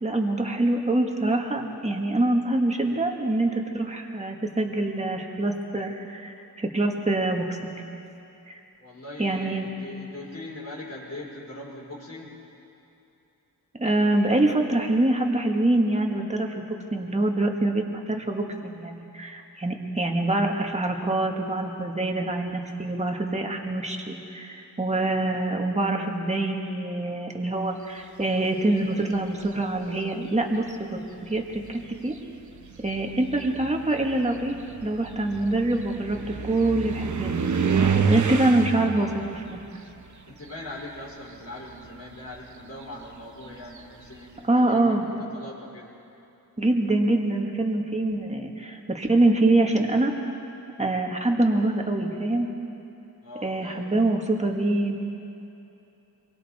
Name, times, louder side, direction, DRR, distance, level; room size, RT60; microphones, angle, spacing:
voice 1, 0.0-7.7 8.5-8.6 9.2-9.7 13.7-31.4 31.7-32.2 32.8-34.6 34.8-36.2 36.4-39.6 44.4-45.1 46.6-50.1 50.8-52.5 53.4-55.0, right 2 dB, 20° right, 2 dB, 1.8 m, -25 dB
voice 2, 8.8-12.4 38.0-38.4 40.3-45.9 53.2-54.0, left 1 dB, 40° left, -5 dB, 5.0 m, -41 dB
sound 1, 29.1-29.7 30.7-30.8 31.3-41.2 41.5-44.2, right 5 dB, 50° right, 1.1 m, -30 dB
27.0 x 22.5 x 4.3 m, 2.9 s
wide cardioid pair, 140°, 37 cm